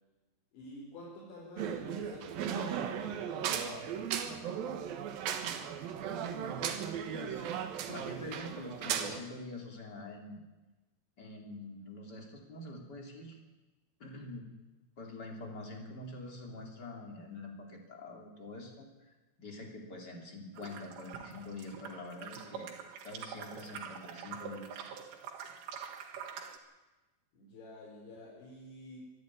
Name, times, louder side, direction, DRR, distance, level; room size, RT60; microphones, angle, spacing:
voice 1, 0.5-4.3 27.3-29.0, left 2 dB, 85° left, -4 dB, 6.3 m, -49 dB
sound 1, 1.6-9.2, right 8 dB, 65° right, 2.8 m, -36 dB
voice 2, 6.2-6.6 7.1-7.5 7.9-10.4 11.2-13.4 14.0-14.5 15.0-19.1 19.4-22.7 23.0-24.8, left 2 dB, 25° left, 2 dB, 3.0 m, -45 dB
sound 2, 20.6-26.6, right 7 dB, 85° right, 3.9 m, -45 dB
25.0 x 11.0 x 9.8 m, 1.1 s
omnidirectional pair, 5.1 m